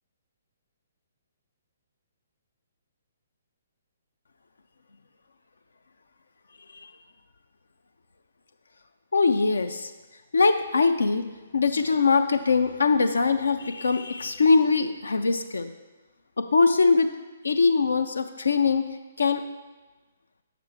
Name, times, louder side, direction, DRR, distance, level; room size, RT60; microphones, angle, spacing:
voice 1, 9.1-9.9 10.3-11.3 11.5-15.7 16.5-17.1 17.4-18.9 19.2-19.4, left 4 dB, 70° left, 8 dB, 0.4 m, -22 dB
6.8 x 5.9 x 3.5 m, 1.2 s
figure-of-eight pair, 125°, 0 cm